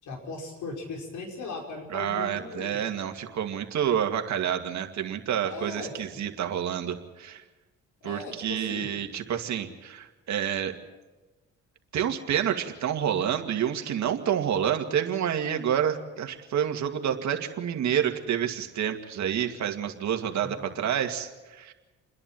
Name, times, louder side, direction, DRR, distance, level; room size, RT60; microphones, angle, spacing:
voice 1, 0.0-2.9 5.5-5.9 8.0-8.9 20.3-20.7, left 3 dB, 75° left, 0 dB, 5.3 m, -38 dB
voice 2, 1.9-7.4 8.0-10.8 11.9-21.7, right 9 dB, 65° right, 5 dB, 2.2 m, -28 dB
29.0 x 11.0 x 9.1 m, 1.2 s
cardioid pair, 90°, 30 cm